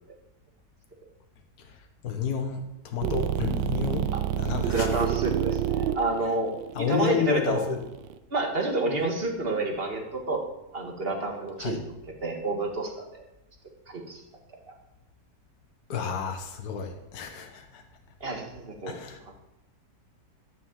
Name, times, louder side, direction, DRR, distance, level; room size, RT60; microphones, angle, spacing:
voice 1, 2.0-2.6 2.8-4.1 4.4-4.9 6.7-7.8 11.6-11.8 15.9-17.8 18.9-19.2, left 7 dB, 60° left, 4 dB, 1.6 m, -30 dB
sound 1, 3.0-8.1, right 11 dB, 80° right, 1.3 m, -29 dB
voice 2, 4.7-7.7 8.3-10.4 10.7-11.9 12.2-13.2 13.9-14.2 18.2-19.0, right 2 dB, 35° right, 1 dB, 1.9 m, -29 dB
12.5 x 5.8 x 7.3 m, 0.92 s
omnidirectional pair, 1.9 m